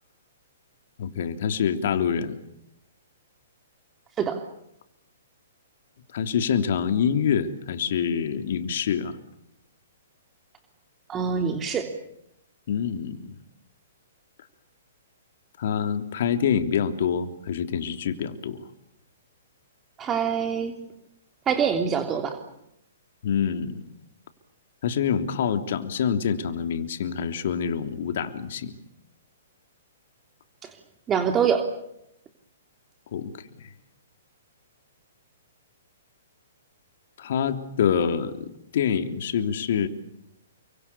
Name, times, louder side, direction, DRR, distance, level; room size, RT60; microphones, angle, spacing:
voice 1, 1.0-2.4 6.1-9.2 12.7-13.4 15.6-18.6 23.2-23.8 24.8-28.7 33.1-33.3 33.6-33.7 37.2-39.9, left 7 dB, 60° left, 9 dB, 3.3 m, -26 dB
voice 2, 11.1-11.9 20.0-20.7 21.5-22.4 30.6-30.7 31.1-31.6, right 7 dB, 20° right, 5 dB, 3.2 m, -24 dB
30.0 x 25.0 x 7.0 m, 0.80 s
hypercardioid pair, 125°, 0 cm